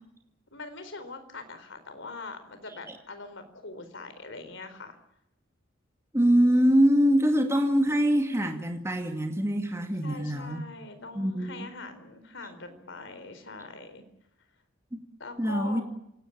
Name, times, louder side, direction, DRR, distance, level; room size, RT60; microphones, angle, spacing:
voice 1, 0.5-5.0 10.0-14.0 15.2-15.8, left 3 dB, 65° left, 10 dB, 4.3 m, -42 dB
voice 2, 6.1-10.6 11.1-11.5 14.9-15.0 15.4-15.8, equal, 15° right, 4 dB, 2.3 m, -23 dB
27.5 x 18.0 x 8.6 m, 0.81 s
head